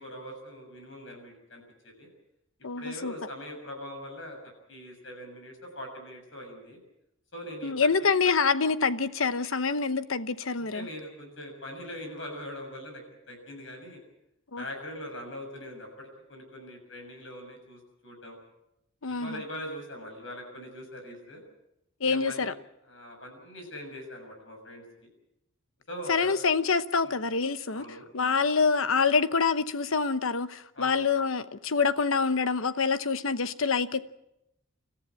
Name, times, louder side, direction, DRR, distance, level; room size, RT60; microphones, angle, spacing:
voice 1, 0.0-2.1 2.8-4.4 4.7-6.8 7.3-7.7 8.0-8.1 10.6-14.0 14.6-18.4 19.1-21.4 22.0-22.5 22.9-24.8 25.9-26.3 27.0-27.2 27.7-28.1 30.7-31.0, equal, 65° left, 6.9 m, -42 dB
voice 2, 2.6-3.1 7.6-10.9 14.5-14.6 19.0-19.4 22.0-22.5 26.1-27.8 28.1-34.0, left 5 dB, 80° left, 0.9 m, -26 dB
27.0 x 14.5 x 8.6 m
head